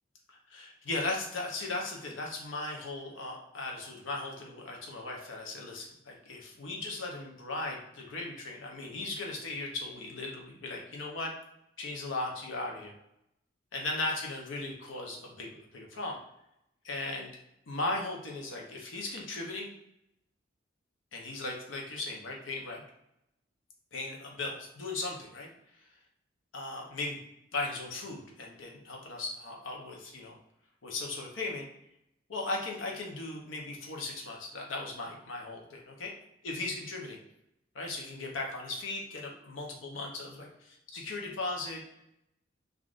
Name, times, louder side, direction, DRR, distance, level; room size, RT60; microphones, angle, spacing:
voice 1, 0.5-11.3 11.8-12.9 13.7-16.2 16.8-17.3 17.7-19.7 21.1-22.8 23.9-25.5 26.5-27.2 27.5-30.4 30.8-31.7 32.3-36.1 36.4-37.2 37.7-40.5 40.9-41.8, left 2 dB, 80° left, -1 dB, 0.7 m, -37 dB
3.5 x 2.4 x 2.5 m, 0.82 s
head